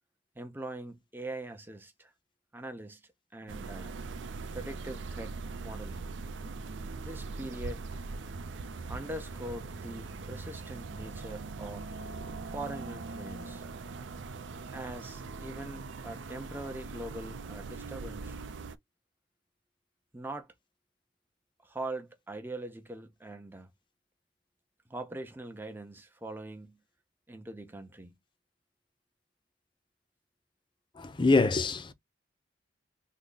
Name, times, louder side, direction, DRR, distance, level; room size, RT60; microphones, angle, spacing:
voice 1, 0.4-2.1 2.5-3.0 3.3-4.0 4.5-6.1 7.0-7.8 8.9-11.9 12.5-13.6 14.7-18.4 20.1-20.5 21.6-23.7 24.9-26.8 27.3-28.2, right 1 dB, 10° right, 0.7 m, -42 dB
sound 1, 3.5-18.8, right 3 dB, 85° right, 0.5 m, -41 dB
voice 2, 31.0-31.9, left 3 dB, 25° left, 0.5 m, -25 dB
3.7 x 2.1 x 3.8 m
head